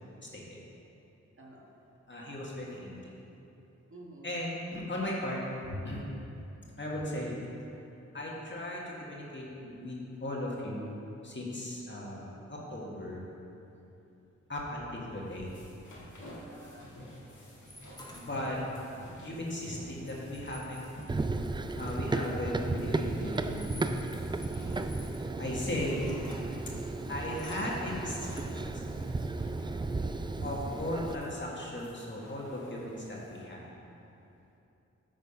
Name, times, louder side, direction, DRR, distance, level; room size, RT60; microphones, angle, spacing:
voice 1, 0.2-0.6 2.1-3.1 4.2-5.4 5.7-6.0 6.8-7.4 8.1-11.0 11.2-13.2 14.5-15.5 18.1-18.6 19.2-20.9 21.8-23.6 25.4-26.0 26.3-26.5 27.1-28.4 28.7-28.8 30.4-33.6, left 1 dB, 40° left, -4 dB, 1.7 m, -37 dB
voice 2, 3.9-4.3 16.5-16.9 24.5-25.1, right 1 dB, 45° right, -3 dB, 1.5 m, -49 dB
sound 1, 15.1-33.5, equal, 80° left, 1.9 m, -50 dB
sound 2, 17.7-18.8 20.1-22.2 23.1-26.4 27.0-28.6, left 1 dB, 15° left, 1.3 m, -53 dB
Run, 21.1-31.1, right 3 dB, 15° right, 0.3 m, -34 dB
8.9 x 4.1 x 5.5 m, 2.9 s
cardioid pair, 45°, 30 cm